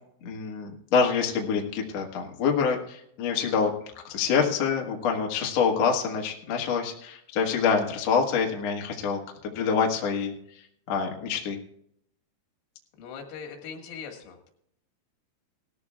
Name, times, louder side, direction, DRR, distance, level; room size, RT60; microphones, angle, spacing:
voice 1, 0.2-3.7 4.1-9.2 9.6-10.6 10.9-11.6, left 6 dB, 60° left, 0 dB, 1.7 m, -26 dB
voice 2, 13.0-14.5, left 6 dB, 85° left, 2 dB, 4.3 m, -40 dB
19.0 x 14.0 x 2.3 m, 0.71 s
omnidirectional pair, 5.5 m